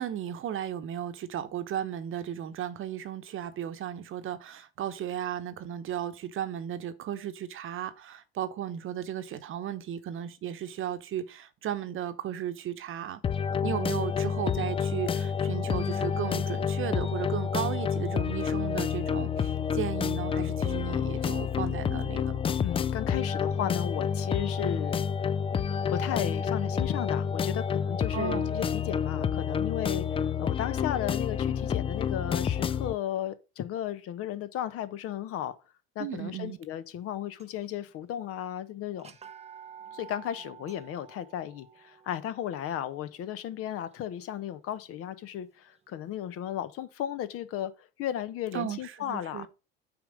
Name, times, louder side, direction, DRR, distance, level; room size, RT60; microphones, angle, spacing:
voice 1, 0.0-13.2 13.6-22.3 28.1-28.5 36.0-36.6 48.5-49.5, right 10 dB, 40° right, 1.0 m, -35 dB
sound 1, 13.2-32.9, left 7 dB, 20° left, 0.4 m, -29 dB
voice 2, 22.6-25.1 25.9-35.5 35.9-39.1 39.9-49.5, left 11 dB, 45° left, 0.8 m, -35 dB
sound 2, 37.3-37.9 38.2-38.3 38.9-44.8, right 8 dB, 20° right, 0.8 m, -51 dB
8.8 x 3.6 x 5.1 m
hypercardioid pair, 65°, 31 cm